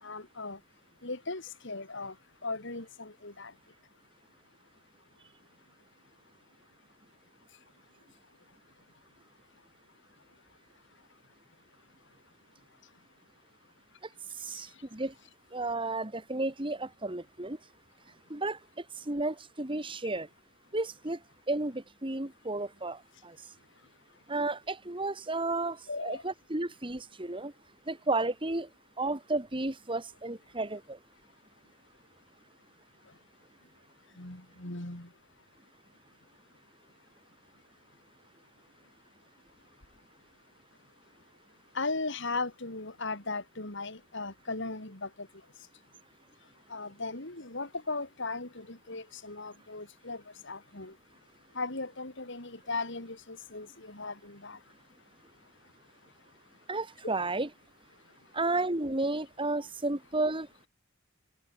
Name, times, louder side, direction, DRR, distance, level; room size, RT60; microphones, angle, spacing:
voice 1, 0.0-0.6 1.0-2.1 2.4-3.5 25.9-26.2 34.2-35.1 41.7-45.3 46.7-51.0 51.5-54.6, left 3 dB, 60° left, 3.9 m, -37 dB
voice 2, 14.4-15.1 15.5-17.6 18.3-18.6 19.1-20.3 20.7-21.2 21.5-23.4 24.3-27.5 27.9-28.7 29.0-31.0 56.7-57.5 58.3-60.5, right 2 dB, 25° right, 2.1 m, -32 dB
head